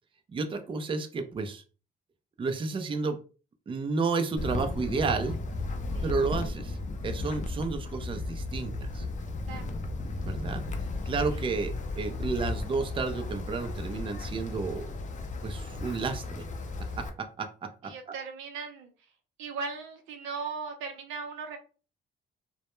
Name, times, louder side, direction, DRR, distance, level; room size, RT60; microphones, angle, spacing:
voice 1, 0.3-1.6 2.4-3.2 3.7-5.4 6.0-6.8 7.0-9.1 10.2-10.6 11.1-14.8 15.4-16.4 17.0-18.1, right 4 dB, 25° right, 7 dB, 0.4 m, -31 dB
Wind, 4.4-17.1, left 2 dB, 40° left, 0.4 m, -35 dB
voice 2, 17.8-18.9 19.4-21.6, right 5 dB, 90° right, 6 dB, 0.6 m, -38 dB
2.1 x 2.1 x 3.0 m, 0.35 s
cardioid pair, 90°, 20 cm